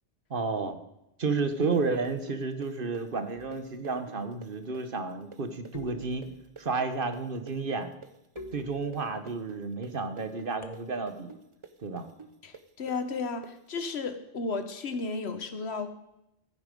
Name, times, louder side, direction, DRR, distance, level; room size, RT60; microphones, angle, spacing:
voice 1, 0.3-0.8 1.2-6.3 6.6-7.9 8.5-11.3 11.8-12.0, right 4 dB, 55° right, 9 dB, 1.2 m, -31 dB
sound 1, 1.4-9.0 9.3-13.9, right 5 dB, 30° right, 0.8 m, -48 dB
sound 2, 3.3-3.9 5.7-6.7 8.4-9.3 10.6-11.3, left 4 dB, 35° left, 1.0 m, -47 dB
voice 2, 12.4-15.9, left 4 dB, 70° left, 9 dB, 1.4 m, -34 dB
15.0 x 9.6 x 5.3 m, 0.86 s
omnidirectional pair, 1.1 m